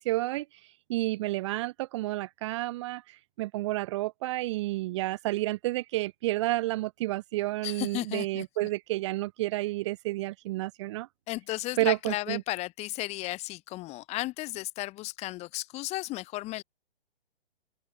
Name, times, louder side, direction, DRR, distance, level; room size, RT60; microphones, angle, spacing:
voice 1, 0.0-11.1 11.8-12.4, right 18 dB, 30° right, 1.5 m, -30 dB
voice 2, 7.6-8.4 11.3-16.6, left 19 dB, 20° left, 5.0 m, -34 dB
open air
figure-of-eight pair, 125°, 31 cm